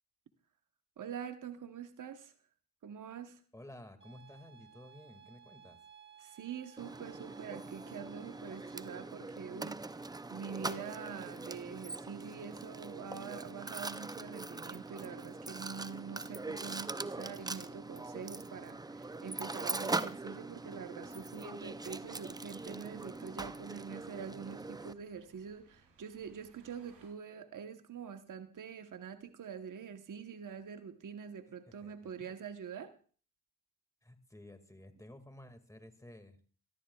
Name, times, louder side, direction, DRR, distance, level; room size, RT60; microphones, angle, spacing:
voice 1, 1.0-2.3 2.8-3.4 6.2-32.9, right 7 dB, 50° right, 8 dB, 1.1 m, -45 dB
voice 2, 3.5-5.8 31.7-32.3 34.0-36.4, left 1 dB, 10° left, 8 dB, 2.0 m, -53 dB
sound 1, 4.0-9.0, right 8 dB, 30° right, 3.1 m, -59 dB
Mechanisms, 6.8-24.9, right 3 dB, 10° right, 0.5 m, -42 dB
sound 2, 21.6-27.1, right 4 dB, 80° right, 7.6 m, -67 dB
21.5 x 13.5 x 2.3 m, 0.41 s
cardioid pair, 70°, 41 cm